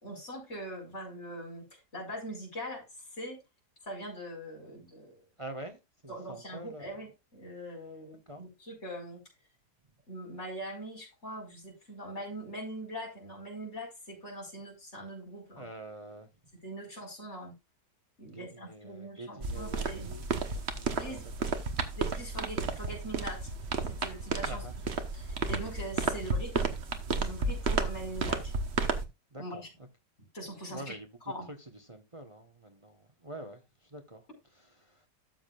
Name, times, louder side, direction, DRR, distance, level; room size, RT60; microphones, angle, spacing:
voice 1, 0.0-3.4 3.8-5.2 6.1-9.2 10.1-15.7 16.6-17.5 18.2-20.1 20.9-21.3 22.0-23.5 23.9-24.6 25.1-26.7 27.2-28.6 29.4-29.7 30.3-31.0 31.3-31.5, equal, 40° left, 5.4 m, -42 dB
voice 2, 5.4-6.9 8.3-8.4 15.6-16.3 18.2-21.2 24.5-24.7 29.3-29.9 30.7-34.3 34.5-35.1, right 1 dB, 20° right, 1.0 m, -46 dB
sound 1, 19.4-29.0, right 4 dB, 45° right, 1.3 m, -32 dB
13.0 x 7.4 x 2.4 m
omnidirectional pair, 1.8 m